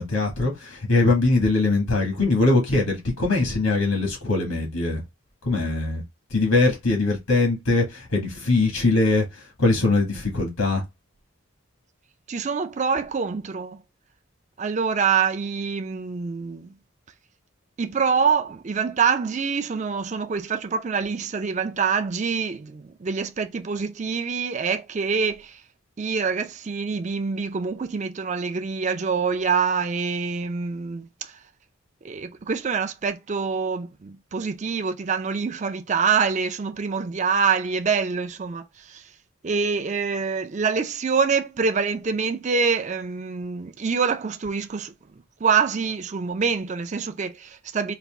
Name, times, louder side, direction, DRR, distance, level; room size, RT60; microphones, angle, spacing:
voice 1, 0.0-5.0 5.4-6.0 6.3-9.2 9.6-10.8, left 3 dB, 85° left, 1.6 m, -21 dB
voice 2, 12.3-13.8 14.6-16.7 17.8-25.6 26.0-31.3 32.0-39.0 39.4-44.9 45.4-47.9, right 5 dB, 35° right, 0.4 m, -25 dB
4.2 x 2.5 x 3.4 m
head